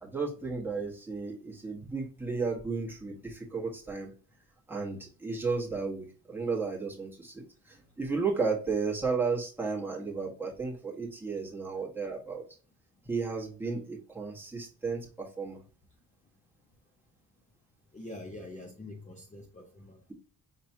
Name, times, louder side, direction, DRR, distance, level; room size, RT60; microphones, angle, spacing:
voice 1, 0.0-4.1 4.7-12.4 13.0-15.6, right 4 dB, 5° right, -3 dB, 1.3 m, -33 dB
voice 2, 17.9-20.0, left 1 dB, 20° left, 0 dB, 0.7 m, -45 dB
5.8 x 2.9 x 2.7 m, 0.40 s
cardioid pair, 140°, 34 cm